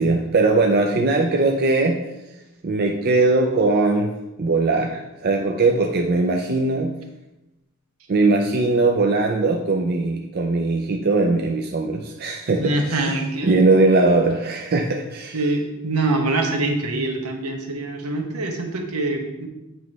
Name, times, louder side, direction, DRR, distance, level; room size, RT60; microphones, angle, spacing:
voice 1, 0.0-2.0 2.6-4.1 4.4-6.9 8.1-13.0 13.4-15.4, right 3 dB, 45° right, 2 dB, 0.5 m, -20 dB
voice 2, 12.6-13.6 15.3-19.5, right 2 dB, 80° right, 4 dB, 1.0 m, -24 dB
8.1 x 3.1 x 5.2 m, 0.98 s
head